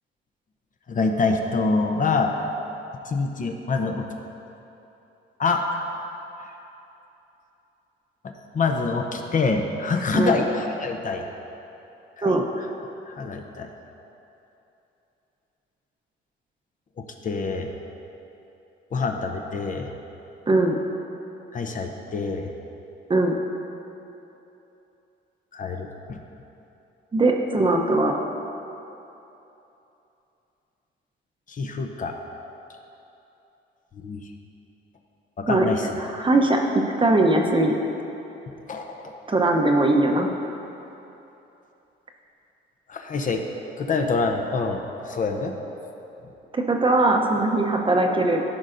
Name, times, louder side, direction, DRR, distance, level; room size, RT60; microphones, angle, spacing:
voice 1, 0.9-2.3 3.1-4.1 5.4-5.6 8.5-11.2 12.2-12.4 13.1-13.7 17.0-17.7 18.9-19.9 21.5-22.5 25.5-26.2 31.5-32.2 34.0-34.2 35.4-35.9 38.7-39.2 42.9-43.4 43.8-44.8 45.1-45.5, left 4 dB, 40° left, 3 dB, 0.6 m, -26 dB
voice 2, 27.1-28.2 35.5-35.7 36.0-36.6 37.0-37.8 39.3-40.3 46.5-48.4, right 2 dB, 25° right, 2 dB, 0.7 m, -20 dB
13.5 x 5.3 x 2.5 m, 3.0 s
cardioid pair, 90°, 20 cm